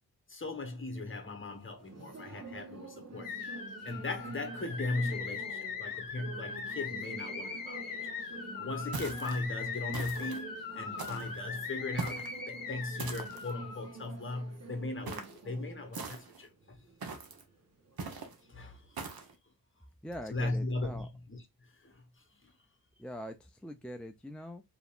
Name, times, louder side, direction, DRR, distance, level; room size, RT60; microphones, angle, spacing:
voice 1, 0.3-3.3 3.8-8.1 8.6-16.8 18.5-18.8 20.3-22.1 22.4-22.5, left 2 dB, 30° left, 1.1 m, -38 dB
sound 1, 0.9-19.4, right 3 dB, 45° right, 1.0 m, -49 dB
sound 2, 3.2-13.9, left 5 dB, 60° left, 1.0 m, -40 dB
sound 3, 8.9-9.4 9.9-10.4 11.0-11.4 12.0-12.4 13.0-13.5 15.1-15.4 15.9-16.4 17.0-17.4 18.0-18.3 19.0-19.3, right 4 dB, 70° right, 1.0 m, -41 dB
voice 2, 20.0-21.1 23.0-24.6, equal, 5° left, 0.4 m, -43 dB
5.1 x 2.9 x 2.4 m
wide cardioid pair, 110°, 38 cm